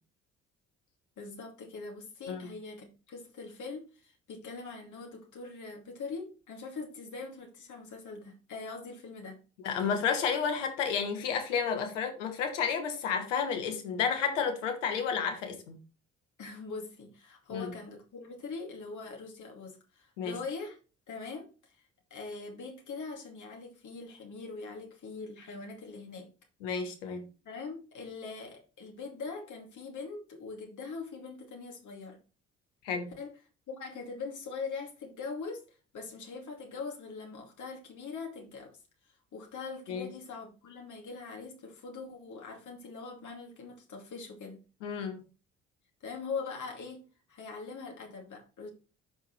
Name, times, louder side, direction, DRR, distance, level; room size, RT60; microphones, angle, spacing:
voice 1, 1.2-9.4 9.6-9.9 16.4-20.8 21.1-21.8 22.1-26.3 27.4-32.2 33.2-33.4 33.7-35.7 35.9-38.8 39.3-44.6 46.0-48.7, left 4 dB, 55° left, 2.6 m, -42 dB
voice 2, 9.6-15.8 17.5-17.7 20.2-20.3 26.6-27.2 32.8-33.1 39.9-40.1 44.8-45.2, left 6 dB, 85° left, 1.3 m, -31 dB
12.5 x 4.7 x 3.2 m
hypercardioid pair, 45°, 36 cm